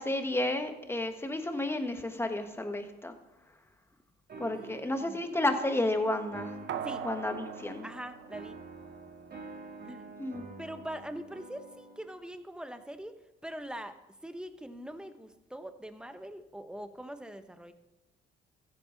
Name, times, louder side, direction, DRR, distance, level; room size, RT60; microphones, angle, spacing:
voice 1, 0.0-3.1 4.4-6.5 7.0-7.9 10.2-10.4, left 1 dB, 10° left, 6 dB, 1.4 m, -31 dB
sound 1, 4.3-12.1, right 3 dB, 55° right, 2.7 m, -48 dB
voice 2, 4.5-5.2 6.8-7.0 7.8-8.6 9.8-10.1 10.6-14.0 14.2-17.7, equal, 5° right, 9 dB, 0.9 m, -43 dB
sound 2, 6.7-9.2 9.6-9.7, right 8 dB, 70° right, 0.9 m, -41 dB
15.0 x 8.7 x 3.9 m, 1.0 s
cardioid pair, 90°, 20 cm